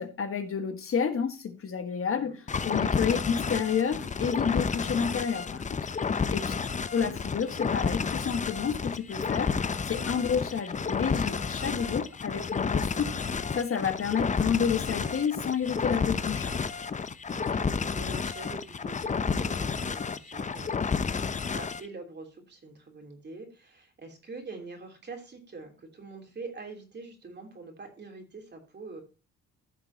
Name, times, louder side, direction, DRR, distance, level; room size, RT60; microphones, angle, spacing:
voice 1, 0.0-5.8 6.1-6.5 6.9-16.5, left 7 dB, 45° left, 1.5 m, -30 dB
sound 1, 2.5-21.9, left 5 dB, 25° left, 0.6 m, -31 dB
voice 2, 17.3-29.0, right 3 dB, 35° right, 3.2 m, -45 dB
15.0 x 6.0 x 2.8 m
cardioid pair, 90°, 30 cm